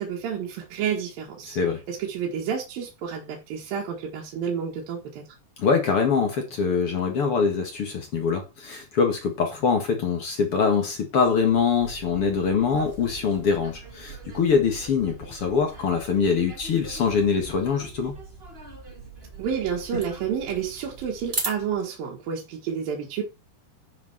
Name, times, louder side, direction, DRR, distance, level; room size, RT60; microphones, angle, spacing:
voice 1, 0.0-1.6 1.9-5.2 19.4-23.2, right 7 dB, 65° right, 3.2 m, -30 dB
voice 2, 1.5-1.8 5.6-18.1, left 5 dB, 45° left, 2.0 m, -24 dB
sound 1, 11.2-21.8, right 4 dB, 25° right, 1.4 m, -39 dB
9.9 x 5.8 x 4.6 m
omnidirectional pair, 4.7 m